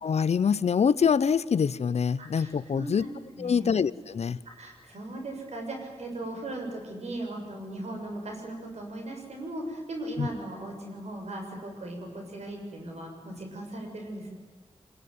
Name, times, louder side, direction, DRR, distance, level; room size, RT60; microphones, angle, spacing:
voice 1, 0.0-3.0 3.4-4.4 10.2-10.3, left 6 dB, 70° left, 18 dB, 0.7 m, -25 dB
voice 2, 2.2-3.7 4.5-14.3, right 1 dB, 75° right, 2 dB, 7.1 m, -38 dB
26.0 x 21.0 x 9.6 m, 1.3 s
wide cardioid pair, 125°, 11 cm